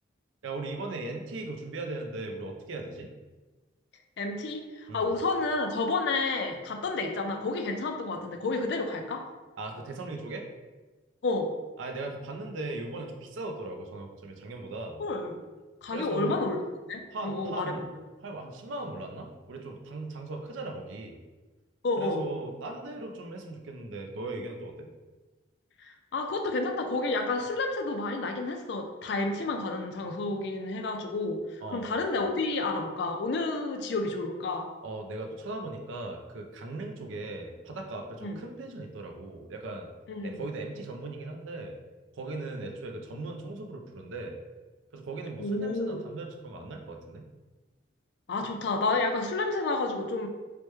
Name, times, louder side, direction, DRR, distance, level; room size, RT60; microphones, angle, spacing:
voice 1, 0.4-3.1 4.9-5.1 9.6-10.5 11.8-15.0 15.9-16.4 17.1-17.8 18.2-21.2 22.0-24.9 31.6-31.9 34.8-39.9 40.2-41.7 42.1-44.4 44.9-47.3, right 2 dB, 80° right, 3 dB, 0.4 m, -38 dB
voice 2, 4.2-9.2 11.2-11.5 15.0-15.4 15.8-16.6 16.9-17.9 21.8-22.2 25.8-34.7 38.2-38.4 40.1-40.4 45.4-46.0 48.3-50.3, left 3 dB, 60° left, 4 dB, 0.3 m, -30 dB
3.2 x 2.1 x 3.0 m, 1.2 s
head